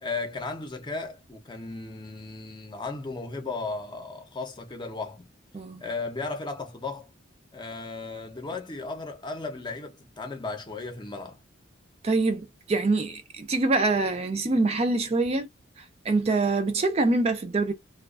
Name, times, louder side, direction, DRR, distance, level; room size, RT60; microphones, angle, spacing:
voice 1, 0.0-5.3 5.8-7.1 7.5-11.4, left 3 dB, 25° left, 0.6 m, -35 dB
voice 2, 12.0-15.5 16.1-17.7, right 3 dB, 35° right, 0.4 m, -25 dB
2.3 x 2.2 x 2.3 m
head